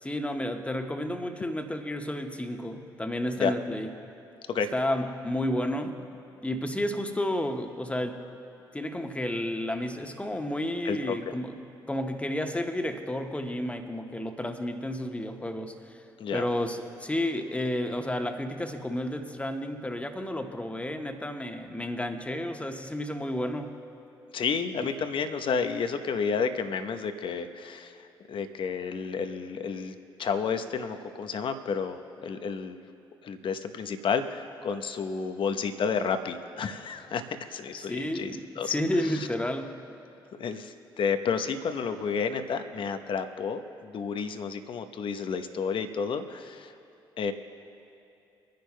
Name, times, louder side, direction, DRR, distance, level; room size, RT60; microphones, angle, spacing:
voice 1, 0.0-3.9 4.7-6.0 6.4-8.2 8.7-11.6 11.9-16.0 16.3-23.7 24.8-24.9 37.8-39.8, left 1 dB, 10° left, 5 dB, 1.3 m, -31 dB
voice 2, 10.8-11.3 16.2-16.4 24.3-32.8 33.2-38.8 39.0-39.3 40.4-46.7 47.2-47.3, left 6 dB, 45° left, 8 dB, 0.9 m, -31 dB
25.5 x 10.5 x 2.2 m, 2.8 s
figure-of-eight pair, 40°, 12 cm